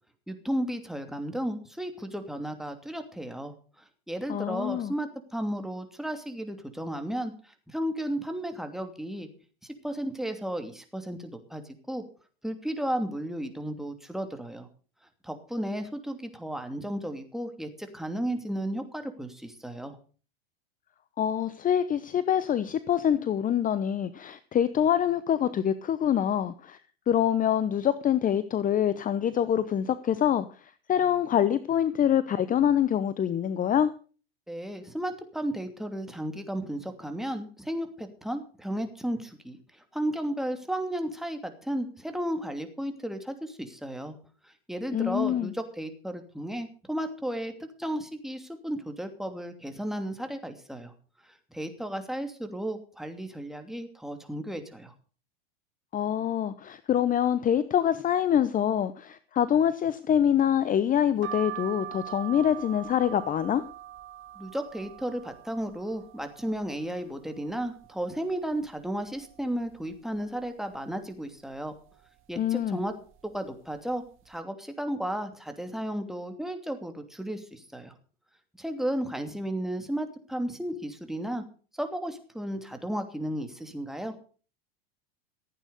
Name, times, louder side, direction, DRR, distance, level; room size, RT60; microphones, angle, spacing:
voice 1, 0.3-3.5 4.1-9.3 9.6-11.6 11.9-12.0 12.4-14.7 15.2-20.0 34.5-44.1 44.4-47.5 47.8-50.9 51.5-54.9 64.4-71.7 72.3-72.9 73.2-77.9 78.6-81.4 81.8-84.1, right 1 dB, ahead, 6 dB, 2.8 m, -34 dB
voice 2, 4.3-4.9 21.2-26.8 27.1-30.5 30.9-33.9 44.9-45.5 55.9-63.6 72.4-72.8, left 9 dB, 25° left, 15 dB, 0.8 m, -25 dB
sound 1, 61.2-66.9 67.3-68.1 68.5-68.6 68.8-69.9 70.4-70.8 71.5-71.9 72.6-72.9 73.1-73.3, right 12 dB, 40° right, 1.9 m, -42 dB
15.5 x 9.1 x 6.6 m, 0.40 s
hypercardioid pair, 100°, 30 cm